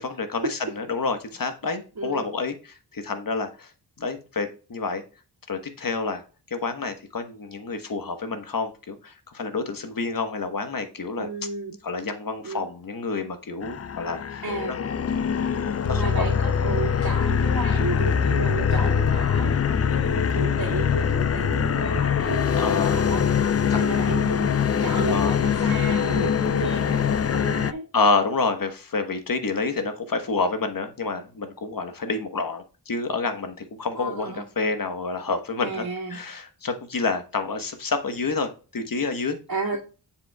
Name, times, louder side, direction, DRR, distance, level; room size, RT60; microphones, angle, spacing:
voice 1, 0.0-3.7 4.0-5.0 5.5-6.2 6.5-11.3 11.8-14.8 15.8-16.2 22.5-23.0 23.7-23.8 25.1-25.8 27.9-35.8 36.1-39.4, left 4 dB, 55° left, 1.2 m, -28 dB
voice 2, 2.0-2.3 11.2-11.8 12.4-12.6 14.4-14.7 15.9-23.3 23.7-27.9 33.9-34.4 35.6-36.2 39.5-39.8, right 3 dB, 55° right, 2.0 m, -33 dB
sound 1, 13.6-27.7, left 7 dB, 40° left, 0.4 m, -23 dB
7.6 x 6.9 x 2.3 m
wide cardioid pair, 70°, 41 cm